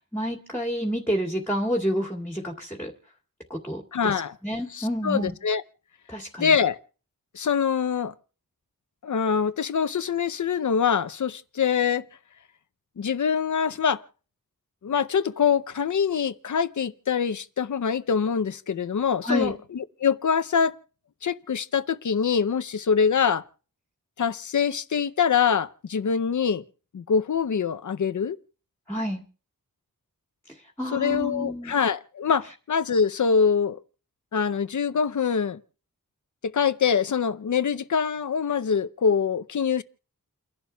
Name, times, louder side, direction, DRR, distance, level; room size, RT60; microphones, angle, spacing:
voice 1, 0.0-2.9 3.5-5.3 6.1-6.5 19.2-19.5 28.9-29.2 30.8-31.8, equal, 5° left, 2.2 m, -29 dB
voice 2, 3.9-4.3 4.7-5.6 6.4-6.8 7.3-8.1 9.0-12.0 13.0-14.0 14.8-20.8 21.2-23.4 24.2-26.6 26.9-28.4 30.9-33.8 34.3-35.6 36.4-39.8, left 6 dB, 60° left, 0.7 m, -24 dB
30.0 x 11.5 x 2.3 m
wide cardioid pair, 120°, 35 cm